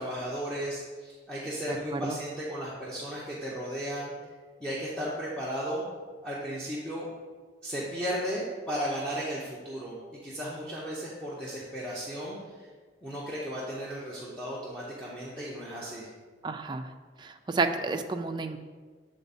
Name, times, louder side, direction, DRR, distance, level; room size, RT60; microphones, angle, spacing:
voice 1, 0.0-4.1 4.6-5.8 6.2-7.1 7.6-12.7 13.0-16.1, equal, 5° left, -7 dB, 0.8 m, -35 dB
voice 2, 1.7-2.2 16.4-16.9 17.2-18.6, right 3 dB, 25° right, 6 dB, 0.4 m, -31 dB
8.1 x 3.5 x 4.1 m, 1.5 s
head